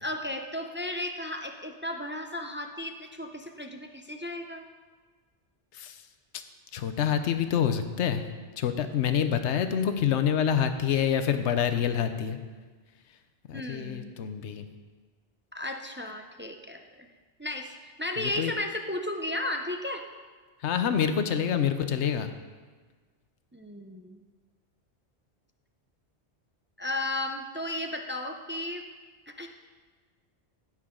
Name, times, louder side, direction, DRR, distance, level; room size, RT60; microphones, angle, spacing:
voice 1, 0.0-4.7 13.5-14.1 15.5-17.1 17.4-20.1 23.5-24.2 26.8-28.9 29.3-29.5, left 1 dB, 15° right, 4 dB, 0.4 m, -34 dB
voice 2, 6.7-8.2 8.6-12.4 13.5-14.7 18.2-18.5 20.6-22.3, left 8 dB, 85° left, 9 dB, 1.0 m, -27 dB
16.0 x 6.1 x 3.7 m, 1.4 s
omnidirectional pair, 1.1 m